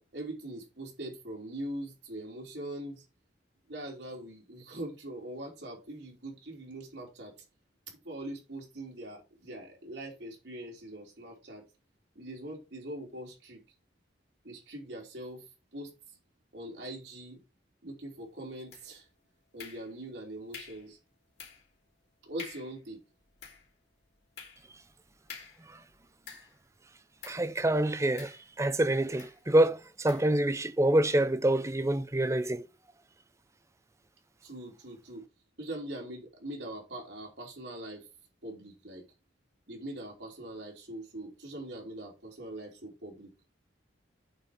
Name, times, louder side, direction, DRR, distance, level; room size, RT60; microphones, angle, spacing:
voice 1, 0.0-3.0 3.7-7.3 8.0-11.6 12.2-13.6 14.4-15.4 15.7-15.9 16.5-17.4 17.8-19.1 19.5-21.0 22.2-23.0 34.4-35.2 35.6-38.1 38.4-39.0 39.7-43.3, right 1 dB, 75° right, 3.5 m, -42 dB
sound 1, 18.7-19.1 19.6-20.1 20.5-20.9 21.4-21.7 22.0-22.1 22.4-22.8 23.2-26.7 27.2-27.5 28.2-28.8 29.2-29.4 30.1-30.4, left 6 dB, 60° left, 2.9 m, -48 dB
voice 2, 27.2-32.7, right 1 dB, 15° right, 0.5 m, -26 dB
8.9 x 4.4 x 5.0 m
head